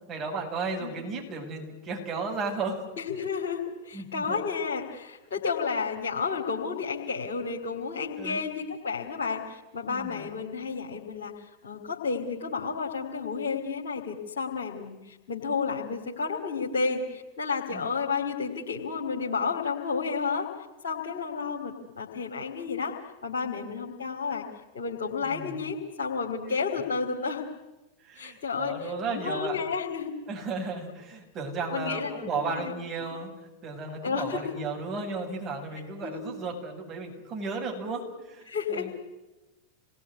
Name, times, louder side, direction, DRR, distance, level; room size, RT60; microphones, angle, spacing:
voice 1, 0.1-2.9 3.9-4.4 8.2-8.4 9.9-10.3 17.7-17.9 25.2-25.6 28.0-29.6 30.3-38.9, right 4 dB, 30° right, 0 dB, 7.6 m, -34 dB
voice 2, 3.0-20.5 20.8-22.9 23.2-24.4 24.7-27.4 28.2-30.1 31.7-32.7 33.0-33.1 34.0-34.5 35.7-36.2 38.5-38.9, left 5 dB, 65° left, -1 dB, 3.0 m, -31 dB
27.5 x 20.5 x 9.7 m, 1.1 s
figure-of-eight pair, 90°, 0 cm